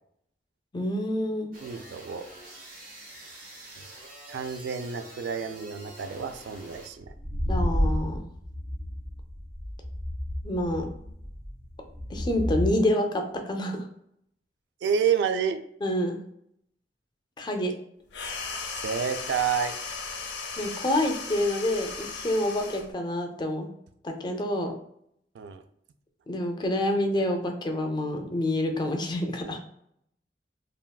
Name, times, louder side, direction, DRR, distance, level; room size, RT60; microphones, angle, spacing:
voice 1, 0.7-1.5 7.5-8.2 10.4-10.9 12.1-13.8 15.8-16.2 17.4-17.7 20.6-23.7 24.0-24.7 26.3-29.6, left 1 dB, 25° left, 4 dB, 0.4 m, -27 dB
sound 1, 1.5-6.9, right 1 dB, 55° right, 0.9 m, -46 dB
voice 2, 1.6-2.3 3.8-3.9 4.3-7.1 14.8-15.6 18.8-19.8 25.3-25.6, right 7 dB, 75° right, 8 dB, 0.3 m, -29 dB
sound 2, 7.1-12.7, equal, 25° right, 1.0 m, -30 dB
sound 3, 18.1-22.9, left 4 dB, 80° left, 0.6 m, -36 dB
3.4 x 2.3 x 2.2 m, 0.71 s
head